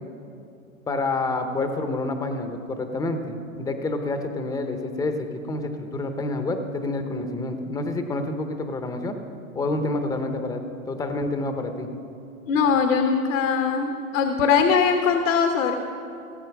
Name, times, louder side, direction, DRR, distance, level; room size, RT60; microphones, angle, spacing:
voice 1, 0.9-9.2 9.5-11.9, left 2 dB, 10° left, 7 dB, 0.7 m, -28 dB
voice 2, 12.5-15.7, left 6 dB, 60° left, 5 dB, 1.2 m, -21 dB
17.5 x 8.0 x 5.9 m, 2.7 s
hypercardioid pair, 130°, 43 cm